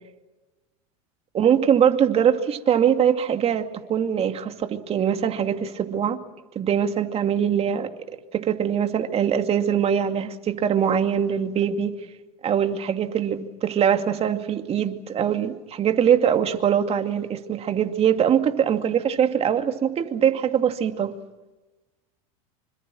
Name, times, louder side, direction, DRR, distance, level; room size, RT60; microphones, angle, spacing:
voice 1, 1.3-6.2 6.6-7.9 8.3-11.9 12.4-21.1, right 8 dB, 30° right, 7 dB, 2.4 m, -22 dB
26.5 x 25.0 x 6.3 m, 1.1 s
hypercardioid pair, 105°, 19 cm